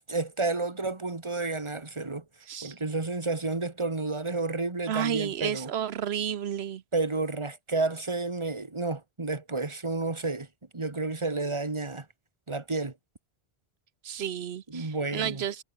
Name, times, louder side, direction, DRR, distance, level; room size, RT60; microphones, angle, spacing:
voice 1, 0.1-2.2 2.6-5.7 6.9-10.5 10.7-12.1 12.5-12.9 14.7-15.4, right 3 dB, 30° right, 1.8 m, -31 dB
voice 2, 4.9-6.8 14.0-15.6, right 9 dB, 85° right, 1.0 m, -31 dB
omnidirectional pair, 1.1 m